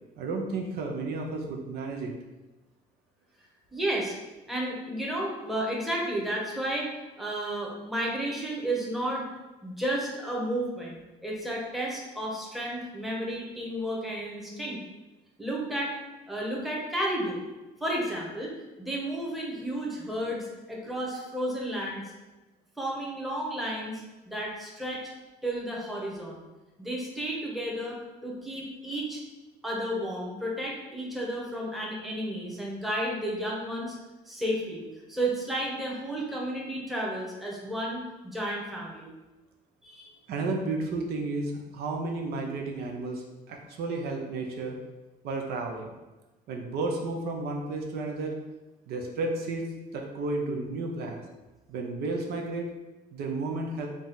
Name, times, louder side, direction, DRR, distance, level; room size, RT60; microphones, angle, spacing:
voice 1, 0.2-2.1 21.1-21.2 40.3-44.8 45.2-45.9 46.5-48.4 48.9-51.2 51.7-52.7 53.1-53.9, right 3 dB, 70° right, 1 dB, 0.6 m, -32 dB
voice 2, 3.7-4.1 4.5-6.9 7.2-9.3 9.6-14.8 15.4-16.0 16.3-17.4 17.8-18.5 18.8-22.0 22.8-25.1 25.4-26.4 26.8-29.2 29.6-34.0 34.3-39.1 39.8-40.1, right 1 dB, ahead, -3 dB, 0.9 m, -32 dB
4.0 x 2.4 x 3.9 m, 1.1 s
cardioid pair, 110°, 17 cm